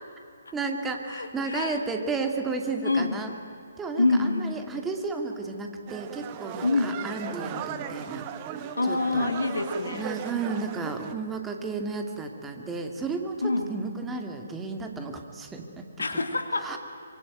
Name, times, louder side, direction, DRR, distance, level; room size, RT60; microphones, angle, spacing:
voice 1, 0.5-3.3 3.8-8.3 8.9-9.3 9.9-13.4 13.7-15.9 16.6-16.8, right 4 dB, 10° right, 4 dB, 2.5 m, -33 dB
voice 2, 1.1-1.8 2.8-3.2 4.0-4.6 6.6-7.0 8.7-10.1 13.4-13.7 16.0-16.7, left 3 dB, 70° left, 7 dB, 2.9 m, -26 dB
sound 1, 5.9-11.1, right 10 dB, 30° right, 1.5 m, -37 dB
25.5 x 24.0 x 9.3 m, 2.7 s
figure-of-eight pair, 135°, 0 cm